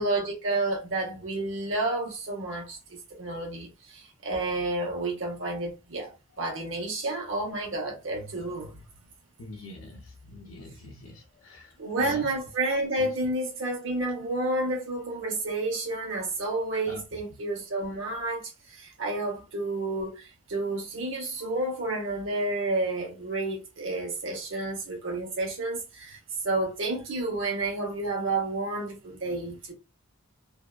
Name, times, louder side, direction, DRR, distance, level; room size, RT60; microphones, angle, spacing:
voice 1, 0.0-8.8 11.8-18.4 18.8-20.2 20.5-26.2 26.4-29.7, right 2 dB, 70° right, 1.0 m, -30 dB
voice 2, 9.4-12.3 13.0-13.1 16.9-17.2, left 2 dB, 90° left, 0.5 m, -44 dB
2.6 x 2.4 x 2.3 m
head